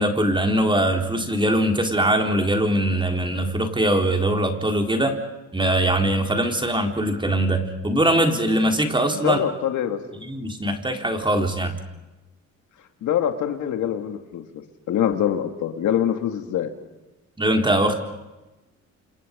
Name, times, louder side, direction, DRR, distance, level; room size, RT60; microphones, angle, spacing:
voice 1, 0.0-5.2 5.5-9.4 10.2-11.8 17.4-17.9, right 1 dB, 15° right, 3 dB, 4.0 m, -21 dB
voice 2, 9.2-10.2 13.0-14.4 14.9-16.7, left 9 dB, 80° left, 5 dB, 2.6 m, -24 dB
29.0 x 27.0 x 5.4 m, 1.0 s
cardioid pair, 90°, 30 cm